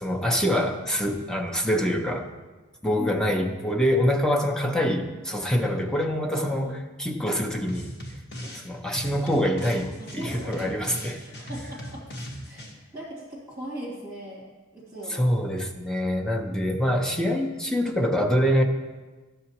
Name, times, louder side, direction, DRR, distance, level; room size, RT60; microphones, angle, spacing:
voice 1, 0.0-2.3 2.8-7.9 8.4-11.2 15.1-18.6, equal, 5° left, 2 dB, 0.6 m, -25 dB
voice 2, 6.3-6.7 10.0-12.0 12.4-14.5 14.7-15.3 16.6-16.8, right 1 dB, 15° right, -5 dB, 2.4 m, -39 dB
sound 1, 7.7-8.7 8.9-12.7, equal, 55° left, 1.2 m, -38 dB
12.0 x 6.6 x 2.9 m, 1.2 s
head